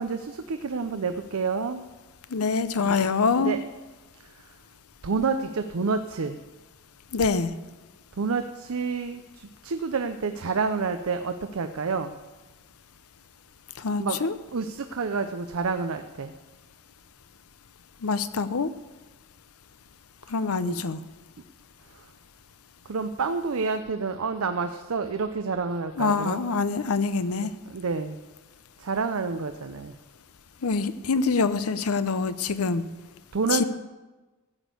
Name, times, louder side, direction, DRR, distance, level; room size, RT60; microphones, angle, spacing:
voice 1, 0.0-1.8 2.8-3.0 3.4-3.6 5.0-6.4 8.2-12.2 14.0-14.2 14.5-16.3 20.5-21.0 21.9-22.1 22.9-26.4 27.4-28.2 28.8-29.9 33.3-33.6, right 4 dB, 70° right, 8 dB, 0.6 m, -29 dB
voice 2, 2.3-3.6 7.1-7.5 13.8-14.3 18.0-18.7 20.3-21.0 26.0-27.5 30.6-32.8 33.5-33.6, left 4 dB, 90° left, 13 dB, 0.7 m, -25 dB
15.0 x 6.3 x 8.1 m, 1.2 s
head